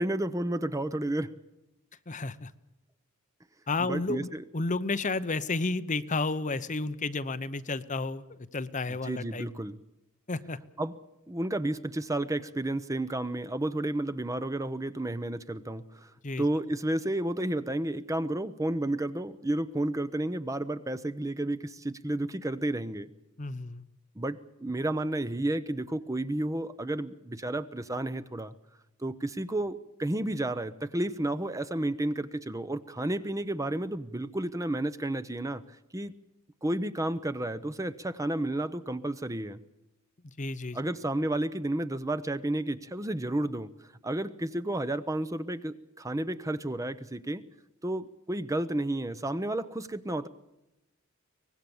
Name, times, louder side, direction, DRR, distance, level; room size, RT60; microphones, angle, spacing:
voice 1, 0.0-1.3 3.9-4.4 9.0-9.8 10.8-10.9 11.3-16.1 16.4-23.1 24.2-28.5 29.0-35.6 35.9-36.1 36.6-39.6 40.7-43.7 44.0-47.4 47.8-50.3, right 1 dB, 15° right, 12 dB, 0.8 m, -31 dB
voice 2, 2.1-2.5 3.7-9.5 10.3-10.6 16.2-16.5 23.4-23.8 40.4-40.8, left 3 dB, 35° left, 12 dB, 0.9 m, -32 dB
24.0 x 19.5 x 7.1 m, 0.92 s
head